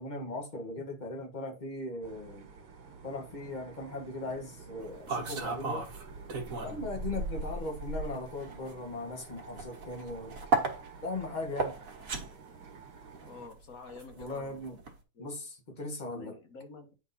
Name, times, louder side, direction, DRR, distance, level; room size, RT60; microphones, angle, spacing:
voice 1, 0.0-2.5 3.0-5.9 6.6-10.4 11.0-11.7 14.1-14.8 15.2-16.3, left 2 dB, 25° left, 1.5 m, -38 dB
sound 1, 2.0-13.5, right 2 dB, 75° right, 2.1 m, -45 dB
sound 2, 4.8-6.9 7.2-15.0, right 3 dB, 55° right, 1.7 m, -36 dB
voice 2, 13.2-14.7 15.2-15.3 16.1-16.9, left 4 dB, 55° left, 1.8 m, -48 dB
9.0 x 3.9 x 4.1 m
omnidirectional pair, 1.8 m